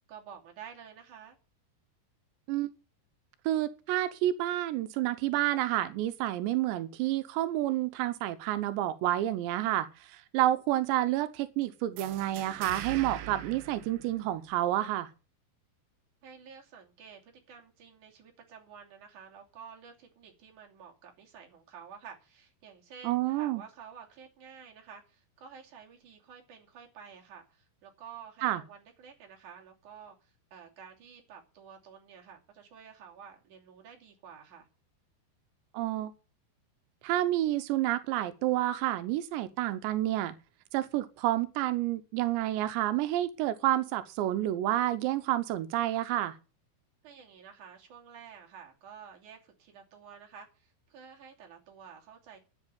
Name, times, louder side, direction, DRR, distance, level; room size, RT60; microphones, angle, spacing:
voice 1, 0.1-1.4 16.2-34.7 47.0-52.4, right 7 dB, 50° right, 3.9 m, -51 dB
voice 2, 3.5-15.1 23.0-23.6 28.4-28.6 35.7-36.1 37.0-40.3 40.7-46.4, right 14 dB, 90° right, 3.1 m, -29 dB
sound 1, 12.0-14.7, right 10 dB, 70° right, 2.3 m, -42 dB
10.5 x 8.1 x 9.2 m
omnidirectional pair, 5.0 m